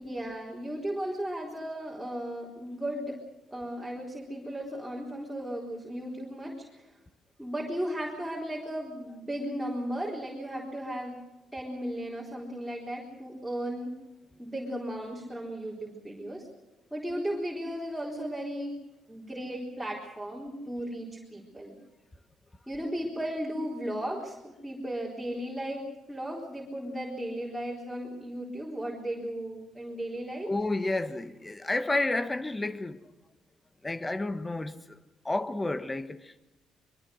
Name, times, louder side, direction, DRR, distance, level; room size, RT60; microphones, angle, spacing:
voice 1, 0.0-3.2 3.5-6.9 7.4-11.2 11.5-14.0 14.4-16.5 16.9-18.8 19.1-21.8 22.7-30.5, equal, 5° right, 4.2 m, -35 dB
voice 2, 30.4-33.0 33.8-35.0 35.2-36.4, left 2 dB, 20° left, 1.4 m, -31 dB
23.5 x 22.5 x 6.4 m
cardioid pair, 90°, 0 cm